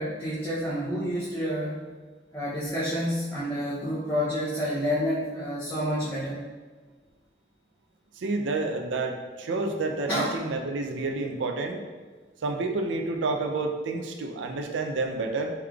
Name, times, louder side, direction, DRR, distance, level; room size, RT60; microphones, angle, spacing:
voice 1, 0.0-1.9 2.3-6.5 10.1-10.4, equal, 10° left, -10 dB, 0.6 m, -29 dB
voice 2, 8.2-11.8 12.4-15.5, right 3 dB, 85° right, 4 dB, 0.4 m, -29 dB
3.5 x 3.2 x 2.3 m, 1.4 s
head